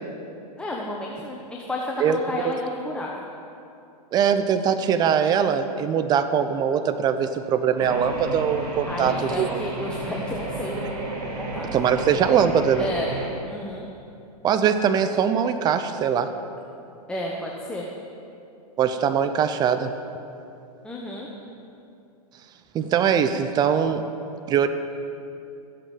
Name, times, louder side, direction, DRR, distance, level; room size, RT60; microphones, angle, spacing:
voice 1, 0.6-3.2 8.9-11.1 11.4-11.7 12.8-13.1 13.4-13.9 17.1-17.9 20.8-21.3, left 1 dB, 5° left, -2 dB, 1.0 m, -32 dB
voice 2, 4.1-9.6 11.7-12.9 14.4-16.3 18.8-19.9 22.7-24.0 24.5-24.7, right 8 dB, 20° right, 10 dB, 0.5 m, -22 dB
sound 1, 7.8-13.3, right 2 dB, 75° right, 2.5 m, -32 dB
14.0 x 8.1 x 5.0 m, 2.7 s
hypercardioid pair, 125°, 20 cm